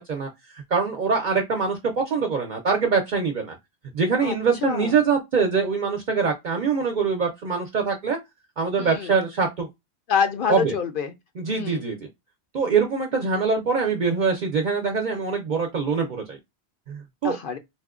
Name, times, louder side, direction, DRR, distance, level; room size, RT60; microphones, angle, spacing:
voice 1, 0.0-3.5 3.9-8.2 8.6-9.7 10.5-10.7 11.4-12.1 12.5-16.4 16.9-17.4, right 5 dB, 55° right, 0.6 m, -24 dB
voice 2, 4.6-4.9 8.8-9.1 10.1-11.1 11.5-11.8 17.2-17.6, left 7 dB, 60° left, 0.7 m, -26 dB
4.2 x 2.1 x 2.3 m
omnidirectional pair, 1.1 m